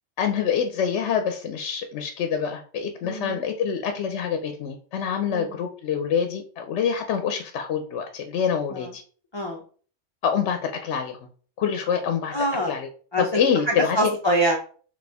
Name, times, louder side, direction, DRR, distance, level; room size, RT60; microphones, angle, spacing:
voice 1, 0.2-9.0 10.2-11.2 11.6-12.3 12.7-12.9 13.2-14.2, left 7 dB, 75° left, 6 dB, 0.8 m, -26 dB
voice 2, 3.0-3.4 5.3-5.6 8.7-8.9 9.3-9.6 12.3-12.7 13.1-13.4 13.7-14.6, right 1 dB, 35° left, 0 dB, 0.4 m, -24 dB
4.1 x 3.0 x 3.4 m, 0.43 s
omnidirectional pair, 1.2 m